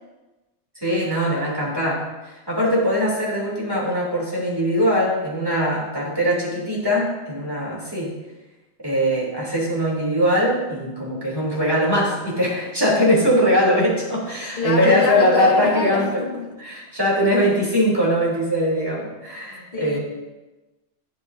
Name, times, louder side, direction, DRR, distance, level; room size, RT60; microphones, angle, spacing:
voice 1, 0.8-2.0 2.5-8.1 8.8-16.2 16.6-20.0, equal, 20° right, -5 dB, 3.0 m, -21 dB
voice 2, 14.6-16.6 19.7-20.0, left 3 dB, 35° left, 1 dB, 1.2 m, -26 dB
12.0 x 9.2 x 2.7 m, 1.1 s
omnidirectional pair, 1.2 m